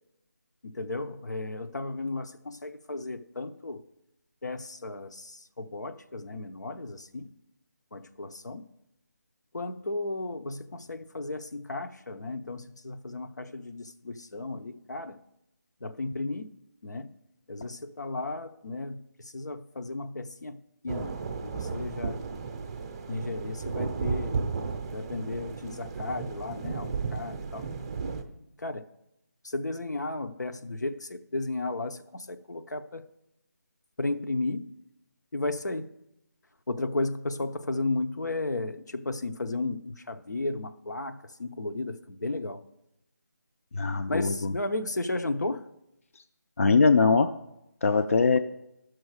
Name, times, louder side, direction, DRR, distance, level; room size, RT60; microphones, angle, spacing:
voice 1, 0.6-3.8 4.4-7.3 7.9-8.6 9.5-15.2 15.8-16.5 16.8-17.1 17.5-20.6 20.8-22.2 23.1-24.4 24.9-27.6 28.6-28.9 29.4-33.0 34.0-34.7 35.3-35.9 36.7-42.6 44.1-45.7 48.3-48.4, left 2 dB, 85° left, 8 dB, 0.8 m, -34 dB
sound 1, 20.9-28.2, right 5 dB, 20° right, 0.6 m, -34 dB
voice 2, 43.7-44.5 46.6-47.3 47.8-48.4, left 4 dB, 50° left, 9 dB, 0.4 m, -22 dB
14.0 x 6.3 x 4.8 m, 0.88 s
figure-of-eight pair, 165°, 9 cm